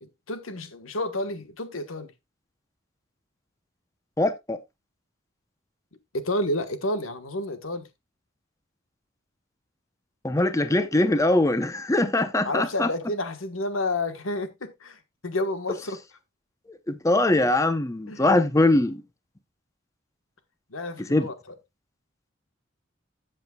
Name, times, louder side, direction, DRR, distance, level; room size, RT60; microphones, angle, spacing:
voice 1, 0.0-2.1 6.1-7.9 12.4-16.0 18.1-18.3 20.7-21.3, left 1 dB, 90° left, 1.3 m, -30 dB
voice 2, 4.2-4.6 10.2-12.9 16.9-19.0 21.1-21.3, left 2 dB, 15° left, 0.7 m, -22 dB
13.5 x 7.4 x 2.3 m
head